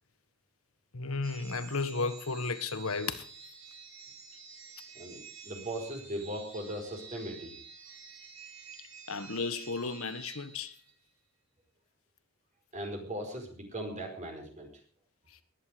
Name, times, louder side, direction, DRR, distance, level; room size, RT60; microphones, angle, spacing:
voice 1, 0.9-3.2 9.1-10.7, left 4 dB, 70° left, 1.5 m, -34 dB
sound 1, 1.2-11.1, right 6 dB, 60° right, 6.4 m, -50 dB
voice 2, 4.9-7.6 12.7-14.7, right 1 dB, 35° right, 5.0 m, -39 dB
20.5 x 11.0 x 5.2 m
head